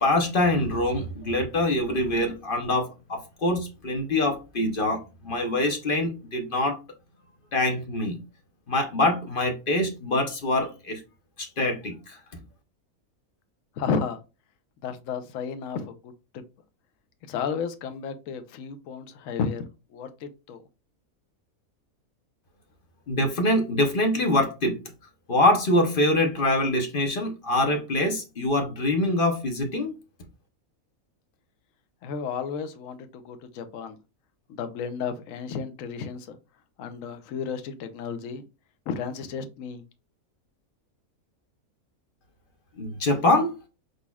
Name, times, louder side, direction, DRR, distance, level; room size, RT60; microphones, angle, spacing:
voice 1, 0.0-6.8 7.5-8.2 8.7-11.0 11.4-12.2 23.1-24.8 25.3-29.9 42.8-43.5, left 1 dB, 45° left, 0.8 m, -24 dB
voice 2, 13.8-14.2 14.8-16.4 17.3-20.6 32.0-34.0 34.5-36.4 36.8-38.4 38.9-39.8, left 6 dB, 70° left, 1.0 m, -33 dB
4.7 x 4.0 x 2.3 m
omnidirectional pair, 1.5 m